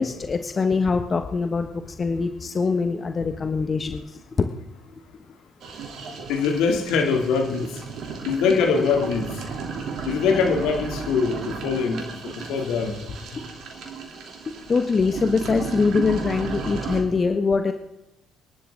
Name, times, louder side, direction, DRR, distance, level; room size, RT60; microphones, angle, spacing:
voice 1, 0.0-4.0 4.4-4.5 14.7-17.7, left 4 dB, 35° left, 7 dB, 1.2 m, -23 dB
sound 1, 5.6-17.0, right 5 dB, 60° right, 3.1 m, -34 dB
voice 2, 6.3-7.8 8.2-9.4 10.0-13.0, left 5 dB, 70° left, 3 dB, 2.7 m, -23 dB
27.5 x 11.5 x 3.8 m, 0.95 s
hypercardioid pair, 55°, 0 cm